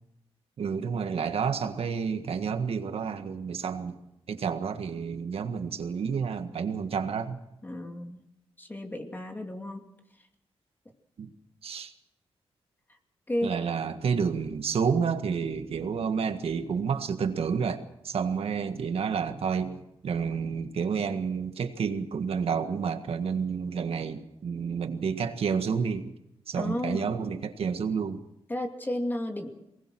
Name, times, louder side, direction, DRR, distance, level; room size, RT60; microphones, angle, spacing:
voice 1, 0.6-4.0 4.3-7.4 11.2-11.3 11.6-11.9 13.4-26.1 26.5-28.2, right 6 dB, 70° right, 8 dB, 1.7 m, -30 dB
voice 2, 7.6-8.2 8.6-9.8 13.3-13.7 26.5-27.1 28.5-29.5, left 1 dB, 20° left, 3 dB, 2.5 m, -33 dB
23.0 x 19.5 x 6.2 m, 0.87 s
cardioid pair, 100°, 10 cm